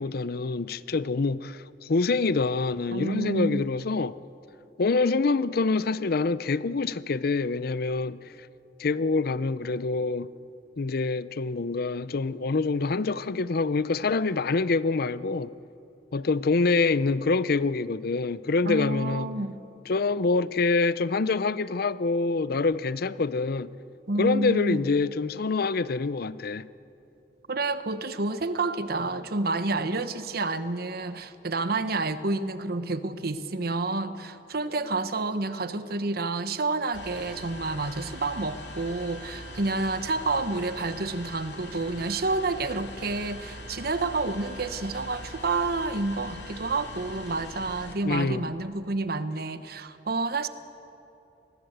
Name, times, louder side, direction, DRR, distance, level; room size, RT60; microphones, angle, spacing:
voice 1, 0.0-4.2 4.8-8.2 8.8-10.3 10.8-15.5 16.1-19.3 19.9-23.7 24.2-26.7 48.0-48.5, left 3 dB, 60° left, 0.6 m, -26 dB
voice 2, 2.9-3.6 18.6-19.6 24.1-24.8 27.5-50.5, right 3 dB, 60° right, 1.1 m, -29 dB
sound 1, 36.9-48.0, left 1 dB, 80° left, 2.7 m, -42 dB
26.5 x 20.0 x 8.1 m
head